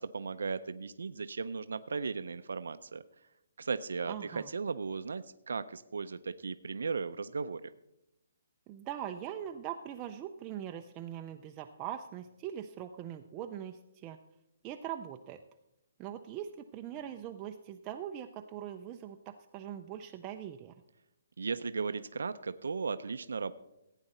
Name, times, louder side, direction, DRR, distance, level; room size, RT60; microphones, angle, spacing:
voice 1, 0.0-3.0 3.6-7.7 21.4-23.5, right 5 dB, 85° right, 12 dB, 0.5 m, -36 dB
voice 2, 4.1-4.5 8.7-14.2 14.6-15.4 16.0-20.7, right 10 dB, 15° right, 5 dB, 0.3 m, -42 dB
16.0 x 9.0 x 4.2 m, 0.89 s
hypercardioid pair, 175°, 0 cm